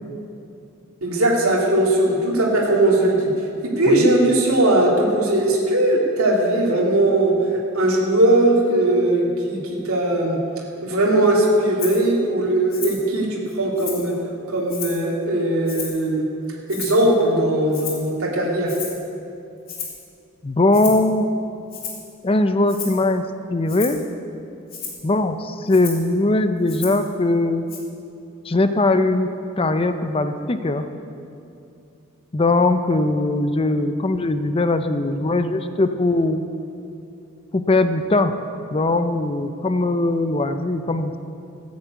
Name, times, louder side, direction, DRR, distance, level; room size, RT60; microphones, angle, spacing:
voice 1, 1.0-3.3 3.6-7.3 7.7-9.6 9.9-10.4 10.8-14.1 14.5-16.2 16.7-18.7, right 1 dB, 85° right, -4 dB, 2.6 m, -19 dB
Rattle (instrument), 11.8-12.0 12.7-13.1 13.5-14.1 14.7-15.1 15.7-16.1 16.7-17.1 17.7-18.1 18.7-19.0 19.7-20.0 20.7-21.1 21.7-22.1 22.7-23.0 23.7-24.0 24.7-25.0 25.7-26.1 26.7-27.1 27.7-27.8, left 6 dB, 45° left, 2.8 m, -33 dB
voice 2, 20.4-21.3 22.2-24.0 25.0-27.7 28.4-30.9 32.3-36.4 37.5-38.3 38.7-41.2, left 2 dB, 25° left, 9 dB, 0.5 m, -20 dB
14.5 x 9.5 x 8.1 m, 2.7 s
head